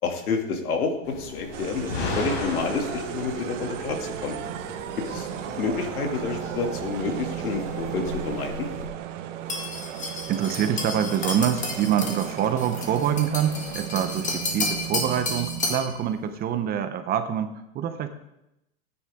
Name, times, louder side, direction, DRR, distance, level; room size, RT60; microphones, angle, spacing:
voice 1, 0.0-4.4 5.1-5.3 5.5-8.7, left 4 dB, 85° left, 3 dB, 2.7 m, -29 dB
sound 1, 1.0-8.9, left 3 dB, 50° left, 5.3 m, -36 dB
sound 2, 1.5-15.8, right 11 dB, 55° right, 1.3 m, -35 dB
sound 3, 9.5-15.9, left 3 dB, 15° left, 1.9 m, -32 dB
voice 2, 10.0-18.1, right 9 dB, 20° right, 9 dB, 0.8 m, -26 dB
18.0 x 9.9 x 3.7 m, 0.89 s
hypercardioid pair, 140°, 43 cm